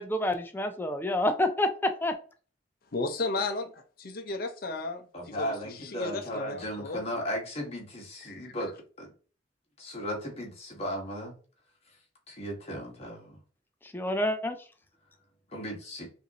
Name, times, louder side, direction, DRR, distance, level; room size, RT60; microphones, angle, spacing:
voice 1, 0.0-2.2 13.9-14.6, left 1 dB, 10° left, 0.4 m, -28 dB
voice 2, 2.9-7.0 8.3-8.5, left 3 dB, 55° left, 0.6 m, -34 dB
voice 3, 5.1-8.7 9.0-9.1 9.8-11.3 12.3-13.4 15.5-16.1, equal, 35° left, 1.4 m, -36 dB
5.4 x 2.6 x 2.9 m
head